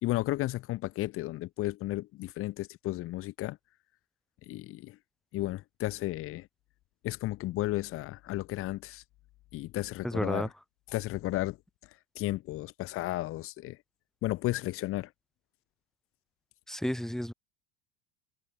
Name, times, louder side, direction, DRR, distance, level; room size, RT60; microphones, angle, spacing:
voice 1, 0.0-3.6 4.5-5.0 5.3-6.5 7.0-9.0 9.5-10.5 10.9-11.6 12.1-13.8 14.2-15.1, left 17 dB, 45° left, 1.8 m, -33 dB
voice 2, 10.0-10.5 16.7-17.3, equal, ahead, 6.8 m, -31 dB
cardioid pair, 170°, 31 cm